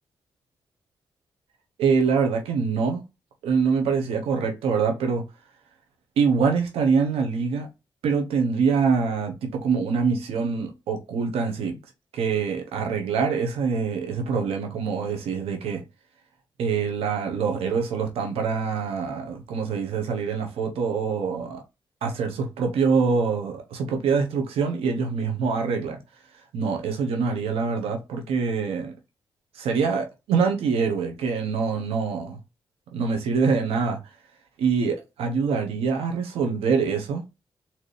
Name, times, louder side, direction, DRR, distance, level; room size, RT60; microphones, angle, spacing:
voice 1, 1.8-3.0 3.4-5.2 6.2-7.7 8.0-11.8 12.1-15.8 16.6-21.6 22.0-26.0 26.5-28.9 29.5-32.4 32.9-34.0 34.6-37.2, right 5 dB, 90° right, 1.1 m, -24 dB
4.3 x 3.0 x 3.3 m
cardioid pair, 60°, 10 cm